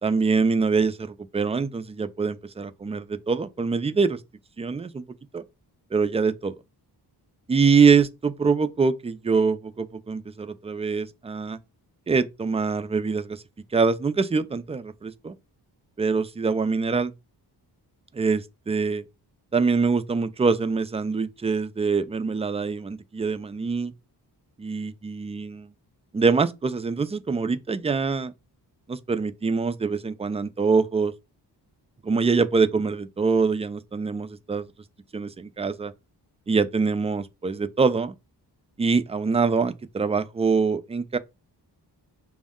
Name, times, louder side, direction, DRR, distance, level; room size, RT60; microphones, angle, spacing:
voice 1, 0.0-4.2 4.6-5.0 5.3-5.4 5.9-6.5 7.5-11.6 12.1-13.4 13.7-15.3 16.0-17.1 18.1-19.0 19.5-23.9 24.6-25.7 26.1-28.3 28.9-31.1 32.0-34.7 35.1-35.9 36.5-38.1 38.8-41.2, right 4 dB, 15° right, 0.3 m, -24 dB
5.0 x 2.1 x 3.6 m
cardioid pair, 85°, 42 cm